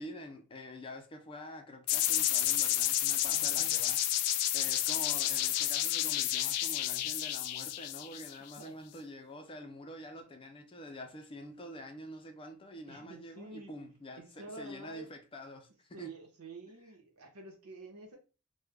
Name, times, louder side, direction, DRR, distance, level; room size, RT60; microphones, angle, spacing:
voice 1, 0.0-4.0 4.5-16.1, left 1 dB, 25° left, 0.5 m, -47 dB
sound 1, 1.9-8.6, left 12 dB, 85° left, 0.3 m, -30 dB
voice 2, 3.2-3.8 8.5-8.7 12.9-13.7 14.2-15.1 15.9-18.2, right 2 dB, 85° right, 0.9 m, -48 dB
3.2 x 2.2 x 3.4 m
head